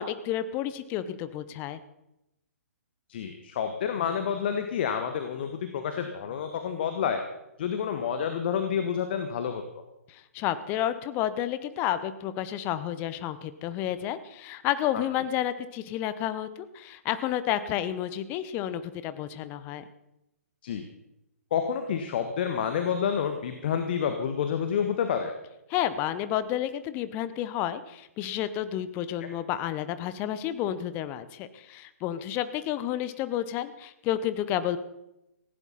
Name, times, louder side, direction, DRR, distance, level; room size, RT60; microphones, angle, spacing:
voice 1, 0.0-1.8 10.1-19.9 25.7-34.8, left 11 dB, 25° left, 13 dB, 1.0 m, -31 dB
voice 2, 3.1-7.2 7.6-9.6 14.9-15.0 20.6-20.8 21.5-25.3 29.2-29.3, left 7 dB, 40° left, 7 dB, 1.5 m, -29 dB
18.5 x 16.0 x 4.2 m, 0.88 s
figure-of-eight pair, 125°, 8 cm